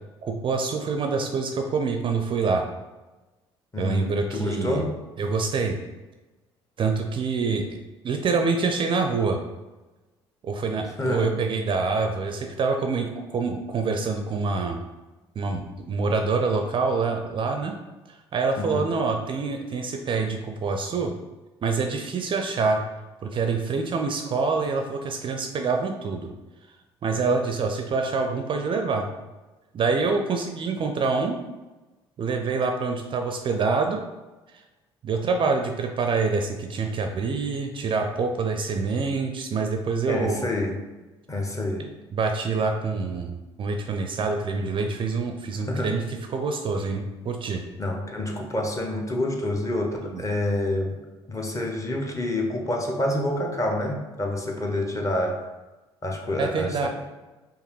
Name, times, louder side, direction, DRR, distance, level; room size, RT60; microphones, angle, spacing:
voice 1, 0.2-2.6 3.8-4.8 5.2-5.8 6.8-7.8 8.0-9.4 10.4-14.8 15.4-17.7 18.1-21.1 21.6-22.8 23.2-26.3 27.0-29.1 29.7-31.4 32.2-34.0 34.5-34.6 35.0-40.5 42.1-43.3 43.6-46.0 46.3-47.6 50.0-50.2 56.4-56.9, right 4 dB, 35° right, 4 dB, 0.4 m, -26 dB
voice 2, 3.7-5.0 11.0-11.4 18.6-18.8 40.1-40.8 41.3-41.9 45.7-45.9 47.8-51.0 51.3-55.4 56.0-56.9, left 1 dB, 20° left, 1 dB, 0.8 m, -27 dB
4.8 x 2.5 x 3.2 m, 1.1 s
figure-of-eight pair, 50°, 14 cm